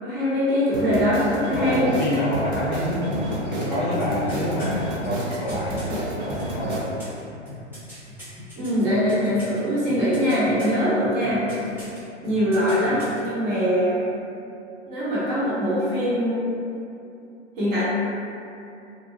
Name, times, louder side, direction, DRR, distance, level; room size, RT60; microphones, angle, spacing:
voice 1, 0.0-1.9 8.6-11.4 12.2-14.0 14.9-16.5 17.6-17.9, equal, 35° right, -9 dB, 1.0 m, -22 dB
sound 1, 0.7-6.8, right 1 dB, 55° right, 0.7 m, -31 dB
voice 2, 1.5-6.9, left 1 dB, 40° left, -7 dB, 0.6 m, -27 dB
sound 2, 4.0-5.9 6.4-9.6 9.9-10.8 11.2-12.0 12.2-13.2 13.5-13.6, left 1 dB, 5° right, 0.9 m, -41 dB
2.8 x 2.2 x 2.6 m, 2.7 s
figure-of-eight pair, 115°, 37 cm